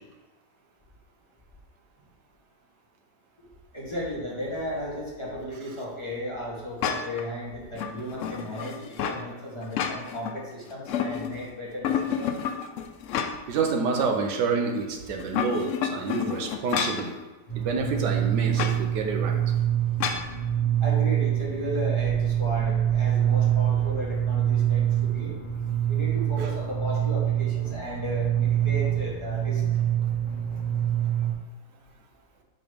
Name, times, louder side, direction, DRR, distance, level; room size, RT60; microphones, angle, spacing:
voice 1, 3.7-12.4 20.8-25.3 25.9-29.6, equal, 15° left, -7 dB, 1.6 m, -35 dB
sound 1, 6.8-7.3 7.8-9.2 9.6-10.4 10.7-11.5 11.8-13.6 14.0-14.1 15.1-17.1 18.5-18.8 20.0-20.3, left 7 dB, 80° left, 0.7 m, -30 dB
voice 2, 13.5-17.1 17.5-19.4 26.4-26.5, right 4 dB, 80° right, 3 dB, 1.4 m, -28 dB
sound 2, 17.5-31.3, right 10 dB, 45° left, 1.7 m, -25 dB
7.9 x 3.3 x 5.1 m, 1.2 s
omnidirectional pair, 1.8 m